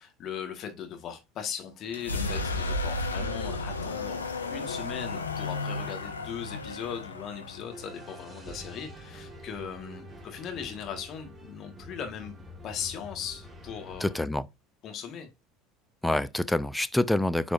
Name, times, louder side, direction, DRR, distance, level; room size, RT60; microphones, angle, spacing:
voice 1, 0.0-4.2 4.5-12.3 12.6-14.1 14.8-15.3 16.1-16.3, left 8 dB, 45° left, 1.6 m, -39 dB
sound 1, 1.9-9.6, left 2 dB, 85° left, 0.9 m, -34 dB
sound 2, 7.7-14.3, equal, 15° right, 1.8 m, -47 dB
voice 2, 14.0-14.5 16.0-17.5, left 1 dB, 5° left, 0.5 m, -26 dB
9.4 x 4.3 x 2.6 m
figure-of-eight pair, 70°, 0 cm